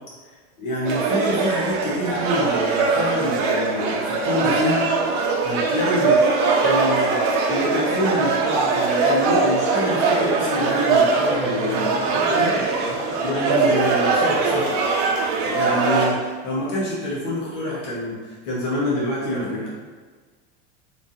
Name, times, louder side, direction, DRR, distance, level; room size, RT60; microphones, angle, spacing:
voice 1, 0.6-6.2 6.6-12.5 13.2-14.7 15.4-19.7, left 1 dB, 55° left, -6 dB, 1.2 m, -26 dB
sound 1, 0.8-16.1, right 4 dB, 55° right, 0.8 m, -21 dB
voice 2, 11.4-13.3 19.3-19.7, equal, 40° left, -6 dB, 1.3 m, -34 dB
5.0 x 3.4 x 2.6 m, 1.4 s
supercardioid pair, 160°, 31 cm